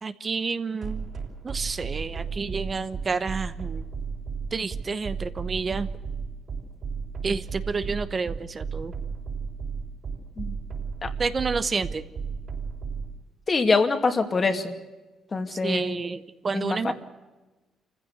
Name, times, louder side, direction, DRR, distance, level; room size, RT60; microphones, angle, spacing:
voice 1, 0.0-1.1 1.4-3.8 4.5-5.9 7.2-8.9 11.2-12.0 15.5-16.9, right 4 dB, 35° right, 11 dB, 1.0 m, -29 dB
sound 1, 0.8-13.1, right 5 dB, 55° right, 6.2 m, -33 dB
voice 2, 13.5-14.7 15.3-16.0 16.5-16.9, left 4 dB, 35° left, 7 dB, 2.5 m, -24 dB
27.0 x 15.5 x 8.2 m, 1.2 s
cardioid pair, 90°, 0 cm